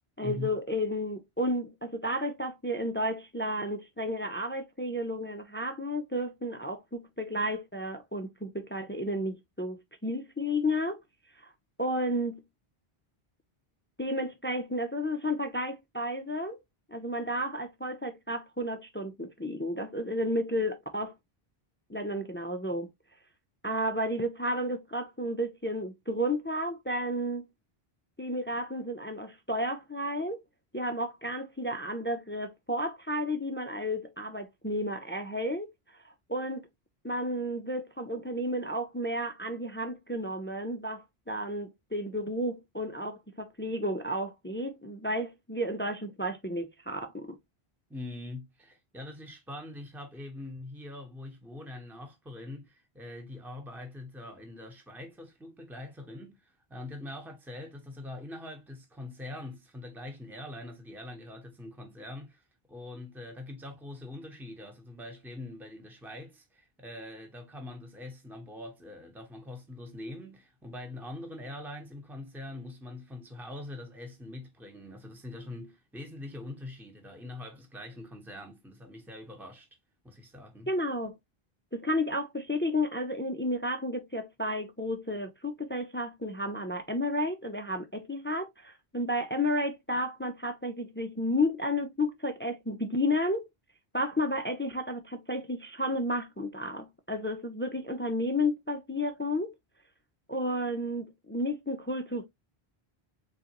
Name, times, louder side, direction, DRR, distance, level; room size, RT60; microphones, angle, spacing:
voice 1, 0.2-11.0 11.8-12.4 14.0-16.6 16.9-21.1 21.9-22.9 23.6-27.5 28.2-30.4 30.7-35.7 36.0-36.7 37.0-47.4 80.7-81.2 81.7-93.5 93.9-99.5 100.3-102.2, left 1 dB, 20° left, 0.3 m, -32 dB
voice 2, 47.9-79.7 80.0-80.7, left 2 dB, ahead, 0.9 m, -43 dB
3.9 x 3.8 x 2.9 m
omnidirectional pair, 1.0 m